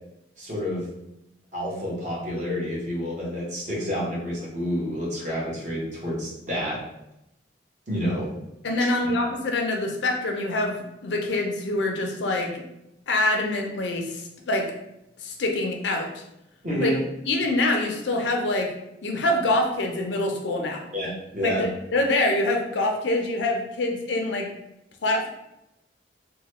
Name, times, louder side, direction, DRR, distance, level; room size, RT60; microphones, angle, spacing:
voice 1, 0.4-0.8 1.5-6.8 7.9-8.3 8.9-9.0 16.6-17.0 20.9-21.6, equal, 45° right, -5 dB, 1.0 m, -29 dB
voice 2, 8.6-12.6 13.1-14.6 15.2-16.2 16.8-17.0 17.3-18.7 19.0-20.9 21.4-24.5 25.0-25.3, left 2 dB, 85° left, 2 dB, 0.5 m, -25 dB
3.0 x 2.2 x 3.0 m, 0.87 s
head